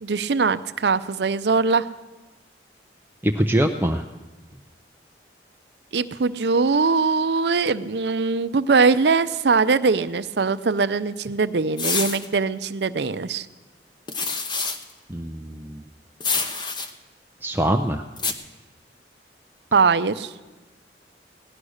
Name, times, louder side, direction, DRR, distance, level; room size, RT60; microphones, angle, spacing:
voice 1, 0.0-1.9 5.9-13.5 19.7-20.3, right 4 dB, 70° right, 13 dB, 0.6 m, -21 dB
voice 2, 3.2-4.0 15.1-15.8 17.4-18.0, right 1 dB, 10° right, 4 dB, 0.5 m, -23 dB
sound 1, 11.8-12.3 14.1-14.8 16.2-16.9 18.2-18.3, left 4 dB, 25° left, 0.9 m, -26 dB
17.5 x 11.0 x 6.4 m, 1.2 s
head